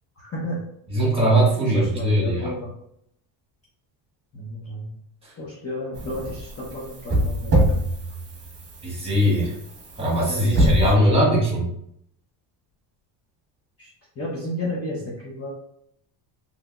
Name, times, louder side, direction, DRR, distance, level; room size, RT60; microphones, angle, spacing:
voice 1, 0.2-0.6 1.6-2.7 4.3-5.0 5.4-7.8 10.3-11.1 13.8-13.9 14.2-15.5, left 1 dB, 30° left, -5 dB, 0.8 m, -32 dB
voice 2, 0.9-2.5 8.8-9.5 10.0-11.7, right 1 dB, 10° right, -5 dB, 1.5 m, -20 dB
sound 1, 5.9-10.9, right 1 dB, 30° right, 1.0 m, -25 dB
3.3 x 3.0 x 2.4 m, 0.74 s
cardioid pair, 115°, 49 cm